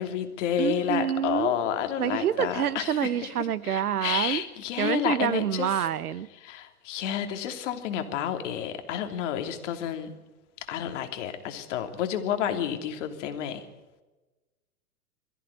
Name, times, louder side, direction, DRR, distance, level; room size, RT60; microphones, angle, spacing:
voice 1, 0.0-3.3 3.6-5.9 6.4-10.1 10.6-13.6, left 9 dB, 55° left, 3.1 m, -30 dB
voice 2, 0.6-1.5 2.0-4.4 4.8-6.3, right 9 dB, 80° right, 1.1 m, -27 dB
23.0 x 15.0 x 9.7 m
hypercardioid pair, 125°, 44 cm